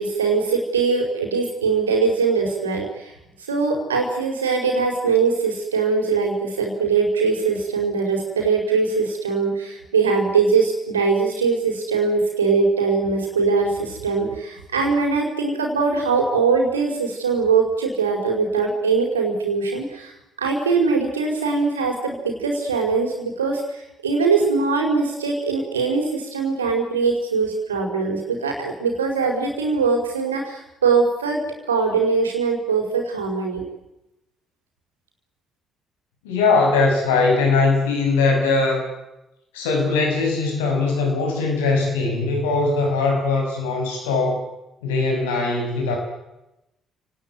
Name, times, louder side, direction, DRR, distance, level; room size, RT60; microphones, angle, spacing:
voice 1, 0.0-3.1 3.5-20.1 20.4-31.4 31.7-33.7, right 4 dB, 80° right, 1 dB, 4.9 m, -21 dB
voice 2, 36.2-38.9 39.5-44.5 44.8-46.0, left 3 dB, 75° left, 2 dB, 6.4 m, -20 dB
29.5 x 19.0 x 9.6 m, 0.94 s
figure-of-eight pair, 45°, 0 cm